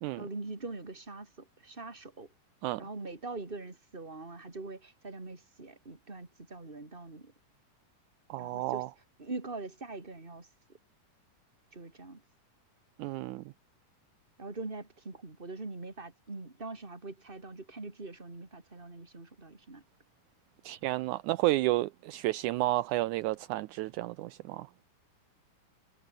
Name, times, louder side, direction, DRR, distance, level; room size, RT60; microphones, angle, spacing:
voice 1, 0.2-2.3 2.8-7.3 8.4-8.9 9.2-10.5 11.7-12.2 14.4-19.8, right 3 dB, 15° right, 3.5 m, -43 dB
voice 2, 8.3-8.9 13.0-13.4 20.6-24.7, right 18 dB, 80° right, 1.9 m, -31 dB
omnidirectional pair, 3.8 m